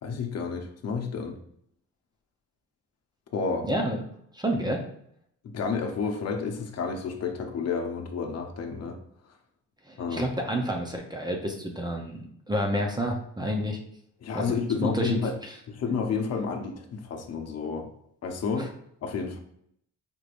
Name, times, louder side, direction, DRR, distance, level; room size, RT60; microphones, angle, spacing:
voice 1, 0.0-1.4 3.3-3.7 5.4-9.0 10.0-10.3 14.2-15.3 15.7-17.9 18.2-18.7 19.0-19.4, left 5 dB, 55° left, 3 dB, 0.9 m, -30 dB
voice 2, 3.7-4.0 4.3-4.8 9.9-13.8 14.3-14.4 14.8-15.5 18.6-18.7, equal, 15° right, 2 dB, 0.7 m, -29 dB
5.2 x 3.2 x 2.5 m, 0.69 s
cardioid pair, 90°, 30 cm